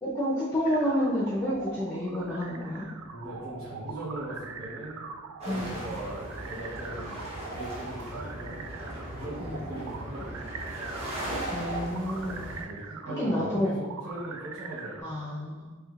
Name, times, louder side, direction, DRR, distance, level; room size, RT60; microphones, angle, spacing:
voice 1, 0.0-2.9 5.5-5.8 9.4-9.6 11.5-12.5 13.2-13.7 15.0-15.7, equal, 15° left, -7 dB, 0.6 m, -29 dB
sound 1, 0.7-15.0, right 5 dB, 85° right, 0.3 m, -42 dB
voice 2, 3.1-5.0 5.4-7.2 7.5-8.6 8.9-10.6 12.1-12.4 12.7-15.1, right 1 dB, 70° right, -8 dB, 0.9 m, -40 dB
sound 2, 5.4-12.6, equal, 30° right, 1.0 m, -38 dB
4.8 x 3.3 x 2.4 m, 1.3 s
head